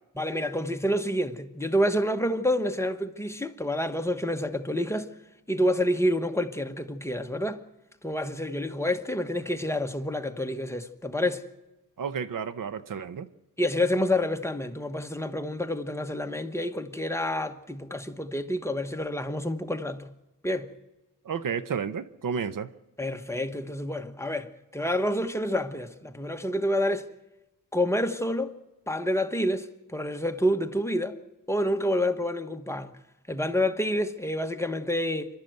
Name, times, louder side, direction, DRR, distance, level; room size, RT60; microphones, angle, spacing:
voice 1, 0.2-5.1 5.5-7.6 8.0-11.4 13.6-20.1 20.4-20.7 23.0-27.1 27.7-28.5 28.9-31.2 31.5-32.9 33.3-35.3, left 1 dB, 10° left, 1.2 m, -28 dB
voice 2, 12.0-13.3 21.2-22.7, right 6 dB, 75° right, 0.9 m, -31 dB
27.5 x 12.5 x 7.9 m
wide cardioid pair, 95°, 33 cm